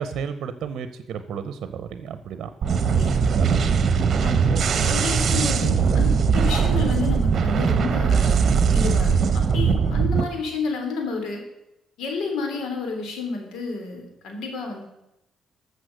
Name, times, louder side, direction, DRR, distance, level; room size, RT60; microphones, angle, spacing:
voice 1, 0.0-2.5 3.3-3.6 4.5-4.6, right 7 dB, 70° right, 10 dB, 0.8 m, -32 dB
sound 1, 2.6-10.2, right 5 dB, 55° right, 1.1 m, -20 dB
voice 2, 4.8-11.4 12.0-14.8, left 4 dB, 80° left, 4 dB, 3.2 m, -30 dB
14.5 x 6.7 x 6.5 m, 0.89 s
cardioid pair, 90°, 0 cm